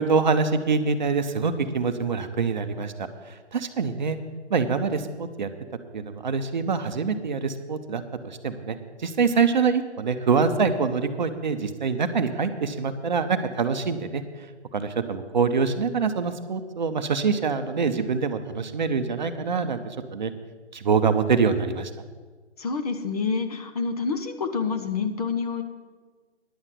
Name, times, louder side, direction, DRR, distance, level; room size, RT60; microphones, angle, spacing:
voice 1, 0.0-2.9 3.3-4.2 4.5-5.5 5.9-14.2 14.7-20.3 20.7-21.9, right 5 dB, 40° right, 8 dB, 0.8 m, -25 dB
voice 2, 22.6-25.6, left 5 dB, 35° left, 7 dB, 0.9 m, -27 dB
10.5 x 7.3 x 8.1 m, 1.4 s
figure-of-eight pair, 150°, 35 cm